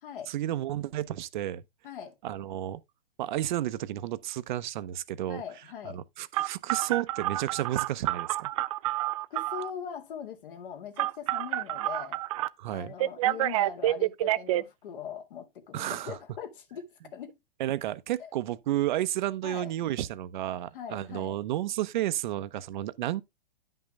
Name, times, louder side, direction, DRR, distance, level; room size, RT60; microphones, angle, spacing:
voice 1, 0.3-1.6 2.2-2.8 3.2-5.4 5.8-8.5 12.6-12.9 15.7-16.2 17.6-23.2, right 13 dB, 50° right, 0.8 m, -32 dB
voice 2, 1.8-2.1 5.3-6.0 9.3-12.2 12.7-17.3 18.2-18.3 19.4-19.7 20.7-21.4, left 8 dB, 60° left, 2.3 m, -41 dB
Telephone, 6.3-9.7 11.0-12.5 13.0-14.6, right 15 dB, 35° right, 0.4 m, -28 dB
10.0 x 5.5 x 3.5 m
hypercardioid pair, 135°, 29 cm